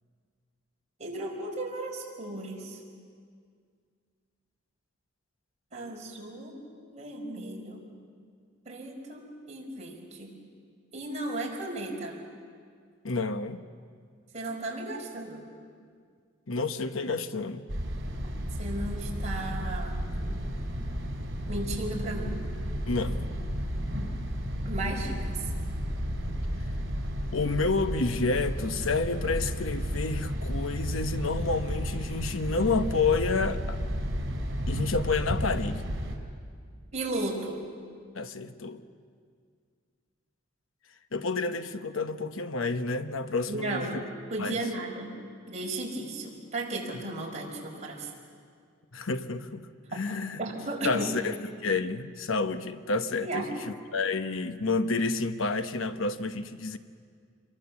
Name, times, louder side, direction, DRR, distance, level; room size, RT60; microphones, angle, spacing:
voice 1, 1.0-2.8 5.7-6.6 6.9-7.8 8.6-10.3 10.9-12.2 14.3-15.4 18.6-20.0 21.5-22.3 24.6-25.5 36.9-37.6 43.5-44.0 44.3-45.1 45.5-48.1 50.4-51.1 53.2-53.6, right 2 dB, 35° right, -1 dB, 5.1 m, -35 dB
voice 2, 13.0-13.6 16.5-17.6 22.9-23.2 27.3-33.8 34.7-35.9 38.1-38.8 41.1-43.9 44.4-44.6 48.9-49.7 49.9-50.4 50.8-51.4 51.6-56.8, left 3 dB, 80° left, 9 dB, 1.0 m, -29 dB
sound 1, 17.7-36.2, equal, 65° right, 4.4 m, -32 dB
27.5 x 23.0 x 7.1 m, 2.1 s
head